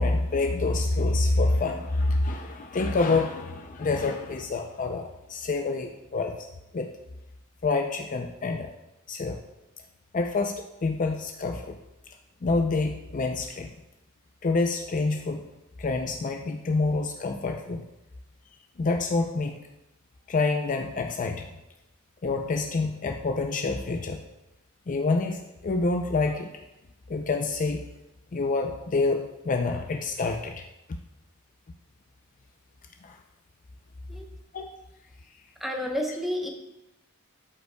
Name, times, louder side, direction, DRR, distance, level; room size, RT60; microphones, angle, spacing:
voice 1, 0.0-6.5 6.7-6.9 7.6-8.7 9.1-9.4 10.1-11.8 12.4-13.7 14.4-15.4 15.8-17.8 18.8-19.5 20.3-21.5 22.2-24.2 24.9-26.5 27.1-27.8 28.3-30.6 33.0-33.2 34.5-34.7, left 3 dB, 35° left, 4 dB, 0.4 m, -27 dB
voice 2, 35.6-36.5, equal, ahead, 1 dB, 0.9 m, -30 dB
12.0 x 5.2 x 2.2 m, 0.94 s
head